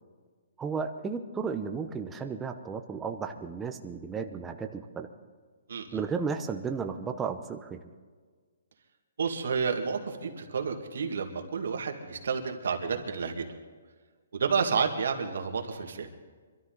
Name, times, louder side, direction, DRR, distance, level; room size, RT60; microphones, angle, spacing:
voice 1, 0.6-5.1 5.9-7.9, right 5 dB, 10° right, 6 dB, 0.7 m, -34 dB
voice 2, 9.2-13.4 14.3-16.1, right 5 dB, 70° right, 3 dB, 2.1 m, -30 dB
24.5 x 13.0 x 4.0 m, 1.5 s
hypercardioid pair, 170°, 0 cm